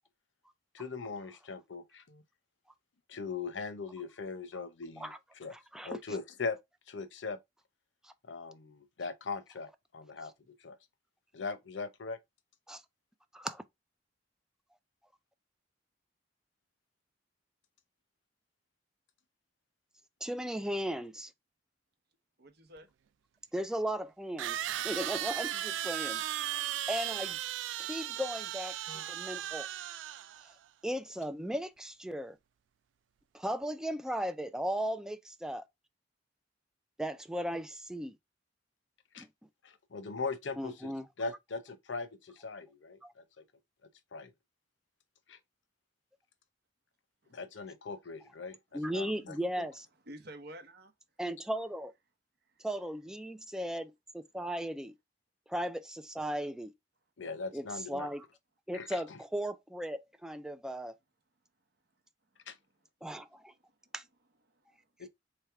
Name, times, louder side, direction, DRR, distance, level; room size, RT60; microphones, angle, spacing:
voice 1, 0.7-2.2 3.1-5.5 5.8-6.6 6.9-7.4 8.3-10.8 11.3-12.2 39.1-39.3 39.6-40.9 41.2-43.2 44.1-44.3 45.3-45.4 47.3-49.7 57.2-58.1 58.7-59.2 62.5-62.6 65.0-65.1, left 4 dB, 80° left, 0.8 m, -40 dB
voice 2, 5.5-6.0 8.0-8.1 12.7-12.8 13.3-13.6 20.2-21.3 23.5-26.2 26.9-27.4 27.8-29.7 30.8-32.4 33.3-35.7 37.0-38.2 39.2-39.3 40.6-41.1 43.0-43.1 48.7-49.9 51.2-51.9 52.6-54.9 55.5-56.7 57.5-58.3 58.7-60.9 63.0-63.5 63.9-64.0, equal, 5° right, 0.3 m, -36 dB
voice 3, 22.4-22.9 47.2-47.4 50.1-50.9 52.4-52.7 62.5-62.6 63.3-63.9 64.5-64.9, right 1 dB, 60° right, 1.0 m, -51 dB
sound 1, 22.8-22.9 24.4-30.5, right 12 dB, 85° right, 0.3 m, -36 dB
3.4 x 3.2 x 4.5 m
head